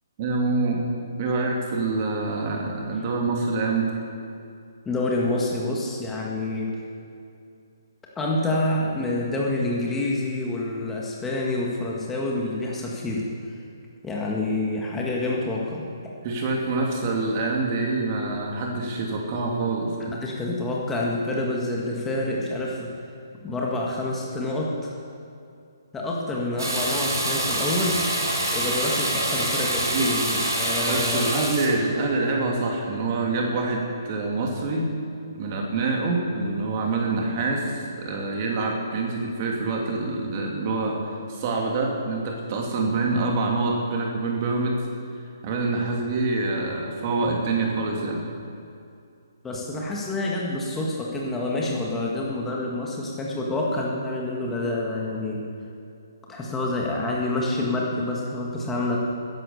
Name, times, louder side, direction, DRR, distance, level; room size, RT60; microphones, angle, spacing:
voice 1, 0.2-0.8 1.2-3.9 16.2-20.2 29.9-30.2 30.8-34.9 35.3-41.0 41.3-44.8 45.4-48.2, right 3 dB, 35° right, 0 dB, 2.7 m, -26 dB
voice 2, 4.9-6.7 8.2-13.5 14.0-15.8 20.2-22.9 23.4-25.0 25.9-28.0 28.5-31.4 49.4-55.4 56.3-59.0, left 2 dB, 10° left, -3 dB, 1.9 m, -27 dB
Water tap faucet / Bathtub (filling or washing), 26.6-31.7, right 1 dB, 70° right, 4.0 m, -25 dB
13.5 x 10.5 x 7.0 m, 2.5 s
figure-of-eight pair, 135°, 2 cm